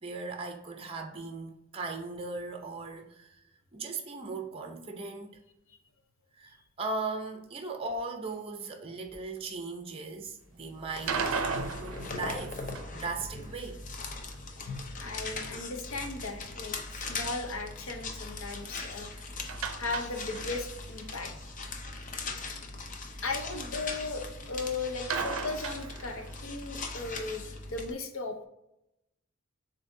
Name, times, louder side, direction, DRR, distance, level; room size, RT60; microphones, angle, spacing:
voice 1, 0.0-3.3 3.7-5.3 6.4-11.2 11.5-13.8, right 3 dB, 25° right, 0.6 m, -38 dB
sound 1, 10.6-27.9, left 3 dB, 40° left, 0.5 m, -40 dB
sound 2, 10.9-13.1 19.5-20.7 21.0-21.1 21.5-21.6 25.1-26.4, right 5 dB, 75° right, 0.5 m, -35 dB
voice 2, 14.8-19.3 19.8-21.3 23.2-28.5, left 3 dB, 70° left, 0.8 m, -37 dB
7.1 x 2.7 x 2.6 m
head